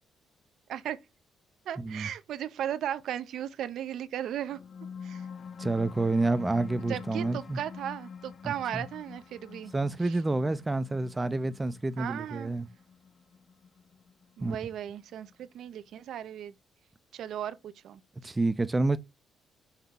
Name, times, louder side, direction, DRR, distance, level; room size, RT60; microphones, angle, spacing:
voice 1, 1.7-4.6 5.0-5.3 6.9-9.7 10.0-10.2 12.0-12.5 14.4-16.5 17.1-18.0, right 10 dB, 75° right, 0.5 m, -36 dB
sound 1, 4.3-15.3, left 6 dB, 55° left, 0.5 m, -46 dB
voice 2, 5.6-7.6 8.4-8.8 9.7-12.7 14.4-14.6 18.2-19.0, right 2 dB, 20° right, 0.4 m, -29 dB
5.6 x 2.2 x 3.7 m
cardioid pair, 90°, 0 cm